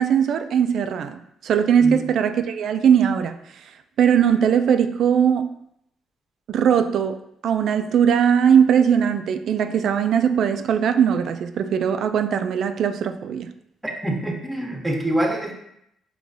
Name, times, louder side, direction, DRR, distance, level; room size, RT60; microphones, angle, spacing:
voice 1, 0.0-3.4 4.0-5.5 6.5-13.5, right 8 dB, 70° right, 8 dB, 0.3 m, -20 dB
voice 2, 13.8-15.5, right 1 dB, 15° right, 1 dB, 0.9 m, -25 dB
4.7 x 3.1 x 2.6 m, 0.76 s
supercardioid pair, 60°, 0 cm